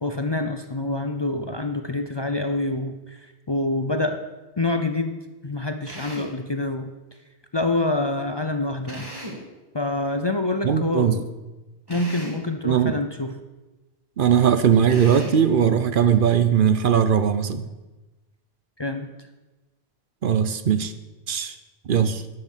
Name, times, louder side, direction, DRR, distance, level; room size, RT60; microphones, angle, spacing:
voice 1, 0.0-4.2 4.6-5.2 5.4-6.9 7.5-9.1 9.7-11.3 11.9-13.3 18.8-19.1, left 2 dB, 30° left, 6 dB, 0.5 m, -26 dB
Drill, 5.9-6.4 8.9-9.5 11.9-12.5 14.9-15.5, equal, 20° right, 1.9 m, -37 dB
voice 2, 10.6-11.2 12.6-13.0 14.2-17.7 20.2-20.9 21.3-21.6 21.9-22.2, right 8 dB, 60° right, 10 dB, 0.8 m, -19 dB
11.0 x 6.6 x 7.3 m, 1.1 s
omnidirectional pair, 1.1 m